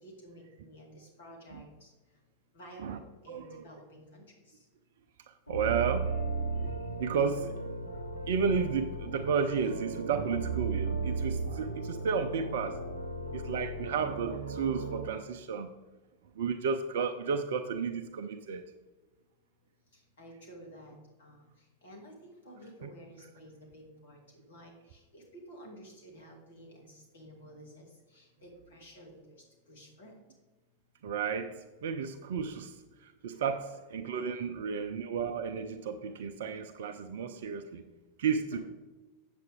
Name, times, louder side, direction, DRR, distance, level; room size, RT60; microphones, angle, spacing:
voice 1, 0.0-1.9 2.5-4.6 19.9-30.1, equal, 65° left, -1 dB, 2.3 m, -52 dB
voice 2, 3.3-3.7 5.3-6.1 6.4-7.7 8.3-12.8 13.3-15.7 16.4-18.6 22.8-22.9 31.0-37.8 38.2-38.6, right 6 dB, 55° right, 8 dB, 0.5 m, -33 dB
sound 1, 5.5-15.1, right 3 dB, 85° right, 0.8 m, -36 dB
8.3 x 7.7 x 3.5 m, 1.2 s
figure-of-eight pair, 90°, 0 cm